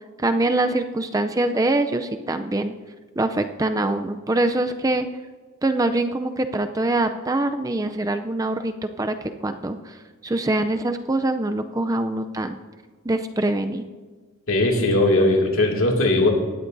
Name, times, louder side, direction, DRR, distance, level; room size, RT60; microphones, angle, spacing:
voice 1, 0.2-2.7 3.2-5.1 5.6-9.1 9.4-10.0 10.2-12.6 13.0-13.8, right 2 dB, 15° right, 8 dB, 0.4 m, -24 dB
voice 2, 14.5-16.3, left 2 dB, 70° left, 0 dB, 2.3 m, -19 dB
18.0 x 13.5 x 2.6 m, 1.4 s
head